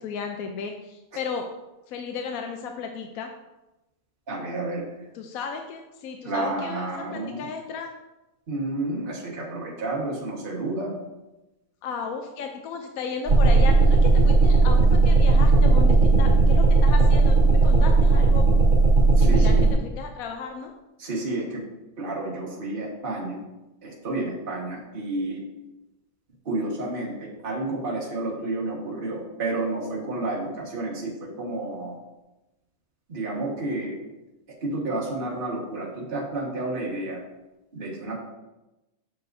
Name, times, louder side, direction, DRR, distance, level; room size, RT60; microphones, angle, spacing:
voice 1, 0.0-1.5 1.9-3.3 5.1-7.9 11.8-18.4 19.2-19.6 19.8-20.7, left 5 dB, 80° left, 4 dB, 1.0 m, -34 dB
voice 2, 4.3-4.8 6.2-7.5 8.5-10.9 19.2-19.7 21.0-21.6 22.0-23.4 23.8-25.4 26.4-32.0 33.1-34.0 34.6-37.2 37.7-38.2, right 2 dB, 40° right, -3 dB, 1.5 m, -30 dB
sound 1, 13.3-19.7, right 3 dB, 60° right, 1.7 m, -16 dB
7.7 x 6.9 x 2.6 m, 1.0 s
omnidirectional pair, 1.5 m